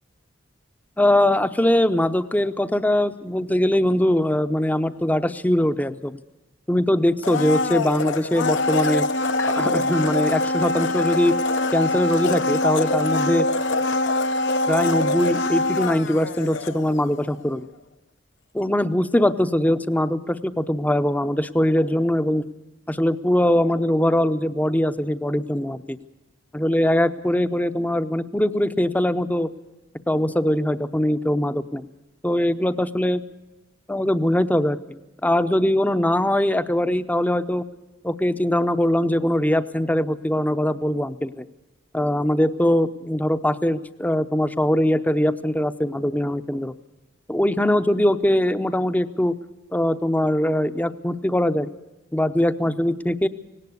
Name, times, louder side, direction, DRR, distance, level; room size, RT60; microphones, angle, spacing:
voice 1, 1.0-6.2 6.7-9.1 9.4-11.4 11.7-13.5 14.7-17.7 18.5-22.4 22.9-26.0 26.5-29.5 30.1-31.8 32.2-33.2 33.9-37.6 38.0-41.4 41.9-46.7 47.3-49.4 49.7-51.7 52.1-53.3, left 1 dB, 10° left, 11 dB, 0.7 m, -21 dB
Domestic sounds home sounds, 7.2-17.2 17.5-17.6, left 2 dB, 70° left, 0.9 m, -24 dB
18.5 x 17.5 x 8.4 m, 0.96 s
head